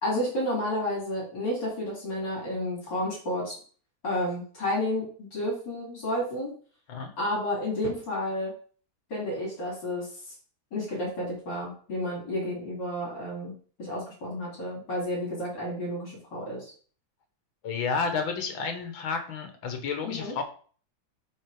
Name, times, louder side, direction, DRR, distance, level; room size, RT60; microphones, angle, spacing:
voice 1, 0.0-3.5 4.0-6.5 7.2-8.5 9.1-10.1 10.7-13.5 13.8-16.7 20.0-20.3, left 1 dB, 65° left, -5 dB, 3.5 m, -31 dB
voice 2, 17.6-20.4, left 5 dB, 80° left, 6 dB, 2.1 m, -31 dB
8.1 x 4.2 x 4.9 m, 0.43 s
omnidirectional pair, 2.1 m